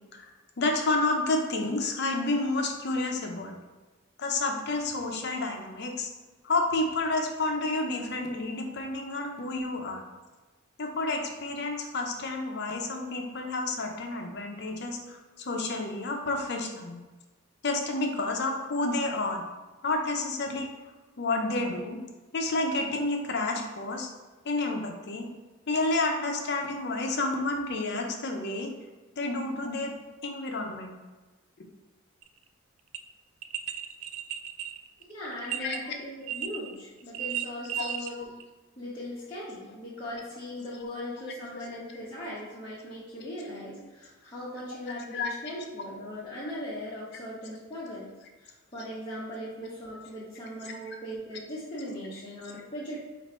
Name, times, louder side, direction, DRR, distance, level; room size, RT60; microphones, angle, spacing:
voice 1, 0.6-3.5 4.2-6.1 6.4-10.0 10.8-17.0 17.6-19.4 19.8-20.7 21.2-22.0 22.3-24.1 24.4-25.3 25.7-28.7 29.2-29.9 30.2-31.0 35.5-35.8 37.8-37.9 45.1-45.3 50.6-51.0, left 2 dB, 55° left, 3 dB, 0.6 m, -30 dB
Small Tibetan Bell, 32.2-32.4 32.9-33.0 33.4-35.8 36.3-36.7 37.0-38.1 38.4-38.5, right 11 dB, 80° right, 0.3 m, -34 dB
voice 2, 35.1-38.3 38.8-48.1 48.4-53.0, left 1 dB, 25° left, -9 dB, 0.8 m, -39 dB
4.4 x 2.5 x 4.2 m, 1.2 s
head